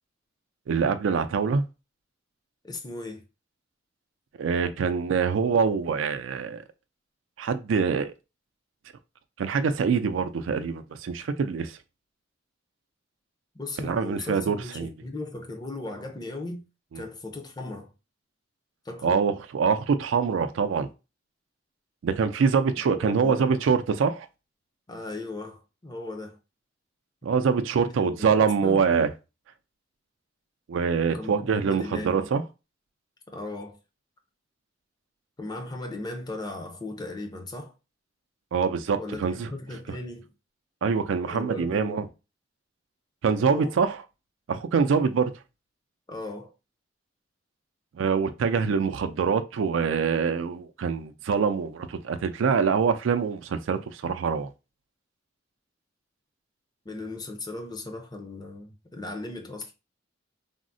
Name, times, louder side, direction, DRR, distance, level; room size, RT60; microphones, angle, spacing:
voice 1, 0.7-1.6 4.4-6.6 7.4-8.1 9.4-11.8 13.8-14.9 16.9-17.0 19.0-20.9 22.0-24.3 27.2-29.1 30.7-32.4 38.5-39.5 40.8-42.0 43.2-44.0 44.5-45.3 48.0-54.5, right 6 dB, 90° right, 0.4 m, -25 dB
voice 2, 2.6-3.2 13.6-16.6 16.9-17.9 18.8-19.3 22.9-23.5 24.9-26.4 27.8-28.1 28.4-28.8 31.1-31.3 31.6-32.3 33.3-33.8 35.4-37.7 39.0-40.3 41.2-42.1 43.4-43.7 46.1-46.5 56.8-59.7, left 2 dB, 20° left, 0.5 m, -37 dB
3.5 x 2.0 x 2.6 m
head